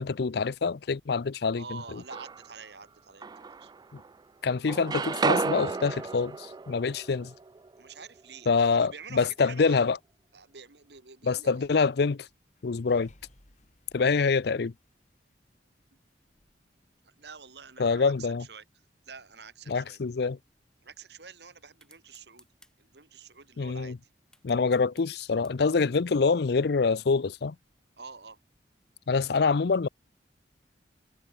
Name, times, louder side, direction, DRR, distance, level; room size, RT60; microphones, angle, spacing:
voice 1, 0.0-1.8 3.9-4.0 4.4-7.3 8.5-10.0 11.2-12.3 12.6-13.1 13.9-14.7 17.8-18.4 19.7-20.4 23.6-24.0 24.4-27.5 29.1-29.9, left 4 dB, 65° left, 0.5 m, -26 dB
voice 2, 1.5-3.7 7.8-9.8 10.3-11.6 17.0-18.6 19.1-20.0 20.8-22.5 22.8-24.0 28.0-28.4, right 5 dB, 70° right, 2.1 m, -47 dB
sound 1, 1.8-2.6 3.2-4.2 4.5-8.4, right 4 dB, 25° right, 0.3 m, -33 dB
sound 2, 12.1-16.7 17.1-17.2 17.5-17.7 18.1-18.2 19.0-19.3, left 1 dB, 45° left, 3.1 m, -63 dB
sound 3, 21.8-22.7 24.3-25.8, left 1 dB, 5° left, 4.5 m, -57 dB
head